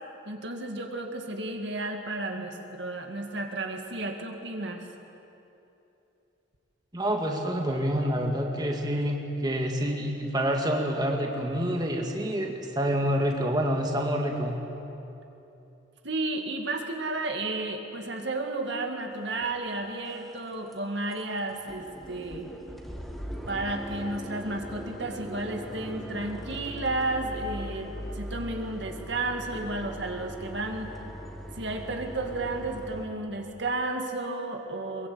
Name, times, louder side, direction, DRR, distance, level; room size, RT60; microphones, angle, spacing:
voice 1, 0.3-4.8 16.0-22.5 23.5-30.9 31.6-35.1, right 2 dB, 60° right, 3 dB, 2.3 m, -32 dB
voice 2, 6.9-14.6, equal, 20° right, 1 dB, 1.9 m, -27 dB
sound 1, 19.4-19.5 20.0-20.4 20.7-20.8 21.1-21.2 21.5-33.1, equal, ahead, 2.1 m, -40 dB
23.0 x 22.5 x 8.7 m, 2.9 s
head